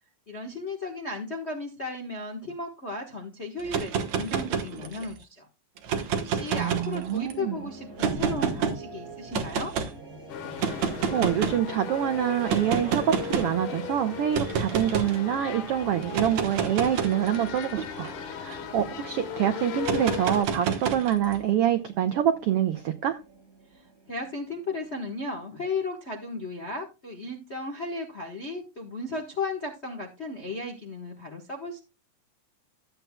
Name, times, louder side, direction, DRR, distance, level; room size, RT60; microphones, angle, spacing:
voice 1, 0.3-5.5 6.1-9.7 23.7-31.8, left 2 dB, 45° left, 0.8 m, -35 dB
sound 1, 3.6-5.2 5.8-7.3 8.0-8.8 9.3-9.9 10.6-11.7 12.5-13.6 14.3-15.2 16.0-18.9 19.8-21.4, right 6 dB, 65° right, 2.5 m, -29 dB
voice 2, 6.5-7.7 10.6-18.1 18.4-23.2, right 10 dB, 85° right, 1.3 m, -26 dB
sound 2, 7.1-25.3, right 3 dB, 30° right, 4.2 m, -46 dB
sound 3, 10.3-20.4, left 9 dB, 75° left, 2.7 m, -37 dB
14.0 x 8.1 x 2.3 m
omnidirectional pair, 3.6 m